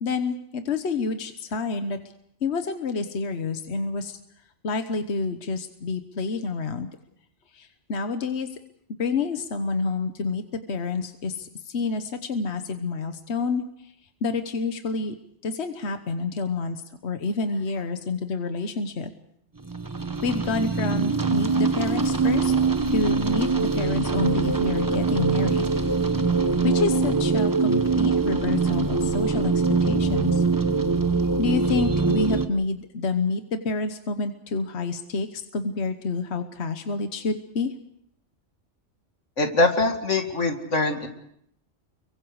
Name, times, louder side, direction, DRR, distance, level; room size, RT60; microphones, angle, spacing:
voice 1, 0.0-2.0 2.4-4.2 4.6-6.9 7.5-8.5 8.9-13.9 14.2-15.1 15.4-19.1 20.2-22.5 22.9-25.7 26.6-29.5 29.8-30.4 31.4-37.7, left 4 dB, 65° left, 7 dB, 1.4 m, -28 dB
sound 1, 19.7-32.5, right 4 dB, 20° right, 0.9 m, -23 dB
voice 2, 39.4-41.1, left 2 dB, 85° left, 4 dB, 2.6 m, -23 dB
30.0 x 23.5 x 4.9 m, 0.71 s
omnidirectional pair, 1.2 m